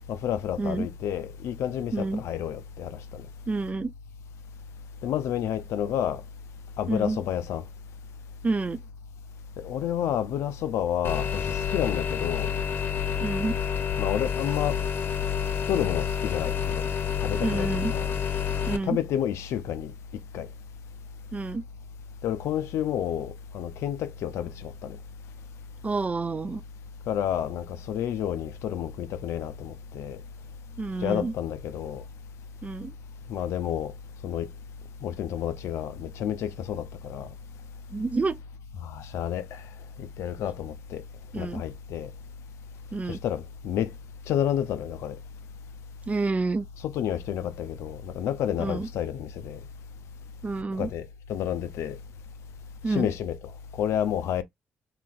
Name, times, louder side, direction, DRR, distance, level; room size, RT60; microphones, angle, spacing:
voice 1, 0.1-3.2 5.0-6.2 6.8-7.6 9.6-12.5 14.0-14.8 15.7-16.8 17.2-18.1 18.9-19.9 20.3-20.5 22.2-25.0 27.1-30.2 31.0-32.0 33.3-33.9 34.2-34.5 35.0-37.3 38.8-39.6 40.0-41.0 41.4-42.1 43.1-43.9 44.3-45.2 46.8-49.6 50.8-52.0 52.9-53.4 53.8-54.4, left 10 dB, 75° left, 0.5 m, -30 dB
voice 2, 1.9-2.2 3.5-3.9 6.9-7.2 8.4-8.8 13.2-13.6 17.4-17.9 18.7-19.0 21.3-21.6 25.8-26.6 30.8-31.3 32.6-32.9 37.9-38.4 41.3-41.6 42.9-43.2 46.1-46.7 48.6-48.9 50.4-50.9 52.8-53.1, right 3 dB, 30° right, 0.4 m, -28 dB
sound 1, 11.0-18.8, left 8 dB, 50° left, 0.8 m, -28 dB
3.0 x 2.5 x 2.3 m
supercardioid pair, 50°, 5 cm